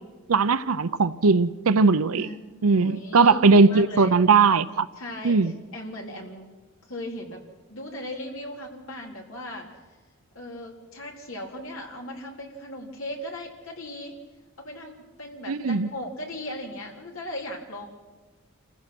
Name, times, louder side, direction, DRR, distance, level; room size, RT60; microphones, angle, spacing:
voice 1, 0.3-2.3 2.6-4.9 5.2-5.5 15.5-15.9, right 4 dB, 90° right, 13 dB, 0.6 m, -19 dB
voice 2, 2.8-4.2 5.0-6.5 6.9-7.4 7.7-9.7 10.3-14.2 14.6-17.9, left 1 dB, 75° left, 0 dB, 3.9 m, -37 dB
28.0 x 15.5 x 6.1 m, 1.3 s
head